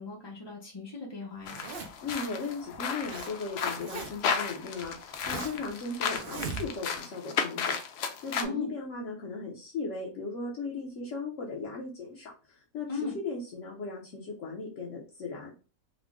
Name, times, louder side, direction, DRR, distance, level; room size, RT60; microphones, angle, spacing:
voice 1, 0.0-1.6 8.4-8.7 12.9-13.2, left 3 dB, 30° left, -3 dB, 0.5 m, -37 dB
Zipper (clothing), 1.4-2.1 2.7-3.3 3.6-4.3 4.8-5.7 6.1-7.0, right 4 dB, 60° right, 0.6 m, -40 dB
sound 1, 1.5-8.4, left 6 dB, 75° left, 0.6 m, -34 dB
voice 2, 2.0-7.7 8.2-15.5, left 3 dB, 60° left, -2 dB, 1.0 m, -37 dB
3.7 x 2.1 x 3.5 m, 0.34 s
omnidirectional pair, 1.7 m